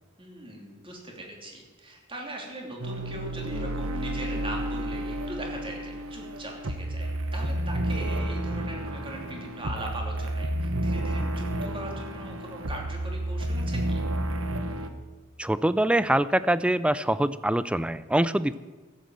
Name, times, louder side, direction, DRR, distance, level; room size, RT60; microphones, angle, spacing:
voice 1, 0.2-14.0, right 1 dB, 25° right, 0 dB, 3.0 m, -40 dB
sound 1, 2.8-14.9, right 1 dB, 80° right, 1.2 m, -31 dB
voice 2, 15.4-18.6, right 1 dB, 5° right, 15 dB, 0.4 m, -24 dB
14.5 x 8.4 x 7.8 m, 1.3 s
head